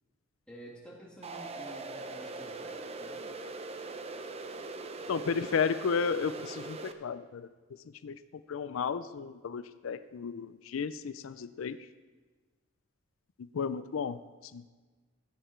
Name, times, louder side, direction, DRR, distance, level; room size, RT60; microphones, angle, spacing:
voice 1, 0.5-3.3, equal, 5° left, -5 dB, 2.5 m, -50 dB
sound 1, 1.2-6.9, right 3 dB, 30° right, 0.6 m, -41 dB
voice 2, 5.1-7.5 8.0-8.2 8.5-11.9 13.4-14.2 14.5-14.6, left 6 dB, 75° left, 13 dB, 0.4 m, -33 dB
16.0 x 8.6 x 4.5 m, 1.4 s
head